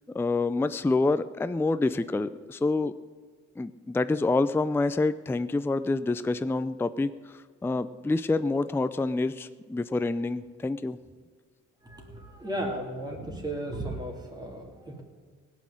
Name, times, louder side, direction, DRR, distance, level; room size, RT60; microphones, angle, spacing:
voice 1, 0.1-2.9 3.6-7.1 7.6-11.0, left 3 dB, 10° left, 12 dB, 0.4 m, -27 dB
voice 2, 11.8-15.0, right 1 dB, 15° right, 0 dB, 3.0 m, -35 dB
17.0 x 6.3 x 9.9 m, 1.5 s
cardioid pair, 90°, 30 cm